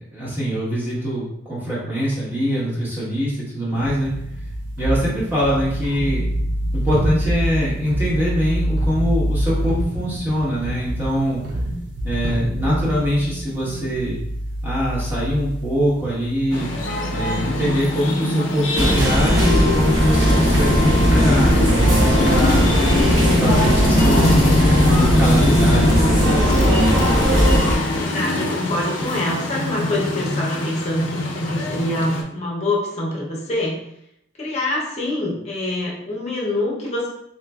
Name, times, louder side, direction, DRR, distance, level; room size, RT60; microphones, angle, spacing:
voice 1, 0.0-4.1 4.8-6.3 6.7-11.4 12.0-14.2 14.6-16.7 17.1-22.7 23.4-24.4 24.7-26.9, equal, 10° right, -9 dB, 1.1 m, -23 dB
sound 1, 3.7-20.3 20.9-22.3, right 1 dB, 70° right, 0.5 m, -26 dB
sound 2, 16.5-32.2, left 1 dB, 90° left, 0.5 m, -23 dB
sound 3, 18.7-27.8, equal, 90° right, 1.0 m, -17 dB
voice 2, 27.9-33.8 34.4-37.1, left 1 dB, 35° left, -4 dB, 0.7 m, -25 dB
4.1 x 2.4 x 2.3 m, 0.79 s
head